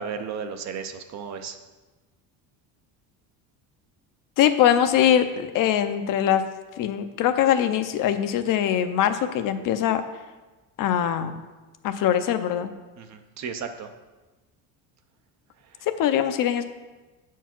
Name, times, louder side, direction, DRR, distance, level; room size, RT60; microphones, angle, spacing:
voice 1, 0.0-1.6 13.0-13.9, right 6 dB, 40° right, 8 dB, 0.5 m, -34 dB
voice 2, 4.4-6.4 6.8-10.0 10.8-11.4 11.8-12.7 15.9-16.6, left 10 dB, 50° left, 9 dB, 0.5 m, -22 dB
8.1 x 4.6 x 5.9 m, 1.2 s
cardioid pair, 165°, 43 cm